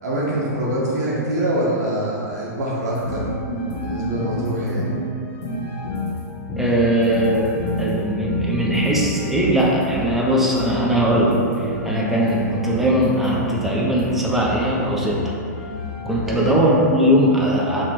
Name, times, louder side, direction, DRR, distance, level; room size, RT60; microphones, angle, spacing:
voice 1, 0.0-3.3 3.8-4.9 16.2-16.6, right 1 dB, 70° right, -5 dB, 1.2 m, -24 dB
sound 1, 3.0-16.4, left 2 dB, 30° left, 0.7 m, -29 dB
voice 2, 6.6-15.3 16.0-17.8, right 1 dB, 5° right, -5 dB, 0.5 m, -20 dB
3.0 x 3.0 x 4.2 m, 2.6 s
hypercardioid pair, 150°, 9 cm